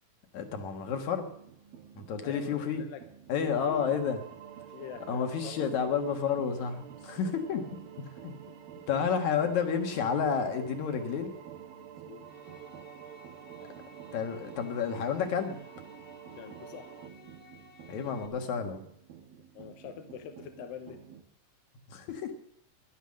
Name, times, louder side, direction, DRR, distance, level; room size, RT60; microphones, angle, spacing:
voice 1, 0.3-1.3 2.0-2.8 3.3-4.2 5.1-7.6 8.0-8.3 8.9-11.3 14.1-15.6 17.9-18.8 21.9-22.3, left 6 dB, 60° left, 5 dB, 2.7 m, -30 dB
sound 1, 1.3-21.2, right 8 dB, 90° right, 3.1 m, -53 dB
voice 2, 2.2-3.0 3.5-3.9 4.7-5.7 8.5-8.6 12.0-12.2 16.3-16.9 19.5-21.0, left 9 dB, 85° left, 7 dB, 2.8 m, -44 dB
sound 2, 3.6-17.1, right 10 dB, 65° right, 1.9 m, -49 dB
sound 3, 12.2-18.3, left 3 dB, 25° left, 0.8 m, -56 dB
14.5 x 11.5 x 6.4 m, 0.68 s
omnidirectional pair, 3.9 m